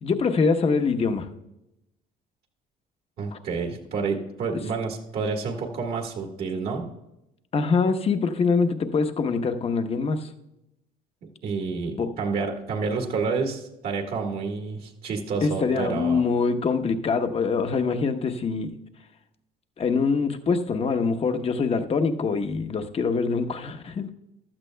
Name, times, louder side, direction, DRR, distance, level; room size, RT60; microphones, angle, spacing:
voice 1, 0.0-1.3 3.3-3.4 4.5-4.6 7.5-10.3 12.0-12.1 15.4-18.7 19.8-24.1, left 4 dB, 35° left, 7 dB, 0.9 m, -24 dB
voice 2, 3.2-6.9 11.2-16.2, right 4 dB, 65° right, 2 dB, 1.7 m, -29 dB
15.0 x 12.0 x 2.2 m, 0.89 s
cardioid pair, 110°, 17 cm